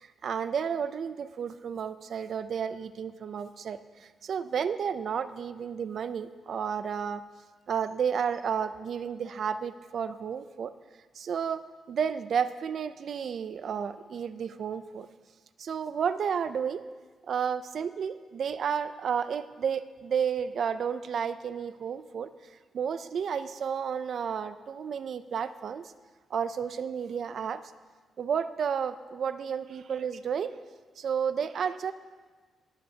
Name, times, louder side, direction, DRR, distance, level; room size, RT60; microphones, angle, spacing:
voice 1, 0.0-7.2 7.7-10.7 11.2-15.1 15.6-16.8 17.3-22.3 22.7-25.9 26.3-27.6 28.2-30.5 31.0-31.9, right 7 dB, 50° right, 13 dB, 0.4 m, -32 dB
18.5 x 8.6 x 2.8 m, 1.4 s
wide cardioid pair, 165°, 0 cm